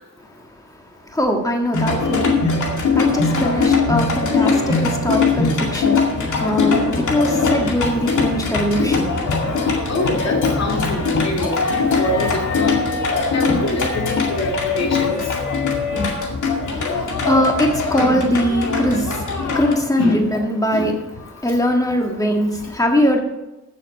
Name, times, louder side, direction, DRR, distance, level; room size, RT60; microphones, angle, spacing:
voice 1, 1.1-2.4 2.9-6.0 6.4-9.2 16.7-19.2 19.5-20.9 21.4-23.2, equal, 10° left, 2 dB, 1.6 m, -21 dB
sound 1, 1.7-19.7, left 4 dB, 90° left, 2.3 m, -21 dB
voice 2, 9.9-12.8 13.3-15.1 15.9-16.1 18.0-18.4 20.0-20.3 20.7-20.9, left 2 dB, 60° left, 1 dB, 2.5 m, -24 dB
14.5 x 6.9 x 5.2 m, 1.0 s
wide cardioid pair, 175°, 29 cm